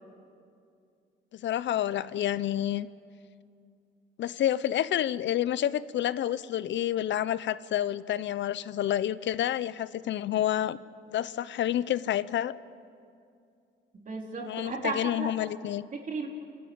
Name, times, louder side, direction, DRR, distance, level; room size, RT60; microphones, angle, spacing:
voice 1, 1.3-2.9 4.2-10.8 11.1-12.5 14.4-15.8, left 11 dB, 65° left, 17 dB, 0.7 m, -29 dB
voice 2, 14.0-15.3 15.9-16.3, right 3 dB, 40° right, 0 dB, 4.0 m, -34 dB
30.0 x 13.0 x 9.0 m, 2.5 s
cardioid pair, 90°, 20 cm